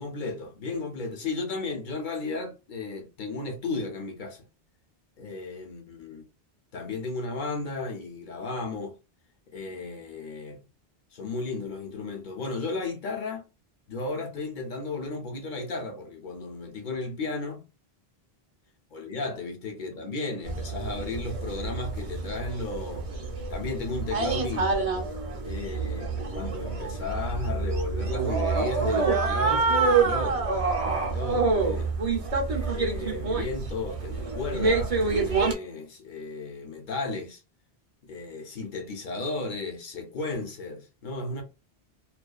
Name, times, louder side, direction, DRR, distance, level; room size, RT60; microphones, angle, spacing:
voice 1, 0.0-4.4 5.2-6.2 6.7-9.0 9.5-10.6 11.1-13.5 13.9-17.6 18.9-23.1 23.5-24.9 25.5-31.9 32.5-37.4 38.1-41.4, left 3 dB, 55° left, 0.8 m, -34 dB
sound 1, 20.4-35.5, right 4 dB, 40° right, 0.6 m, -27 dB
2.4 x 2.2 x 2.3 m
omnidirectional pair, 1.1 m